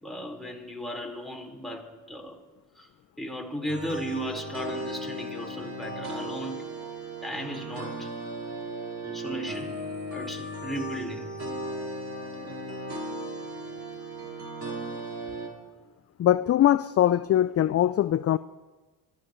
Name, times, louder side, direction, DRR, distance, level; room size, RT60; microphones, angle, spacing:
voice 1, 0.0-2.4 2.8-2.9 3.2-6.7 7.2-8.1 9.0-9.7 10.1-11.3, equal, ahead, -1 dB, 4.5 m, -36 dB
sound 1, 3.7-15.5, right 1 dB, 35° right, 5.0 m, -36 dB
voice 2, 16.2-18.4, left 12 dB, 35° left, 16 dB, 0.4 m, -22 dB
26.5 x 15.0 x 3.2 m, 1.3 s
hypercardioid pair, 50°, 46 cm